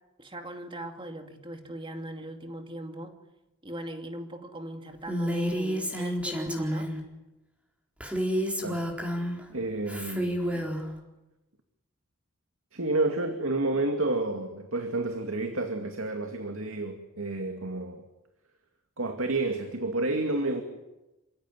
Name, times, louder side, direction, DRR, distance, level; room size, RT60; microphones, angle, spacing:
voice 1, 0.2-3.2 3.6-6.9, equal, 25° right, 2.6 m, -39 dB
Female speech woman speaking, 5.1-7.0 8.0-9.4 9.9-10.8, equal, 5° right, 4.2 m, -30 dB
voice 2, 9.5-10.7 12.7-18.0 19.0-20.6, right 2 dB, 85° right, 2.4 m, -30 dB
28.5 x 16.5 x 9.8 m
head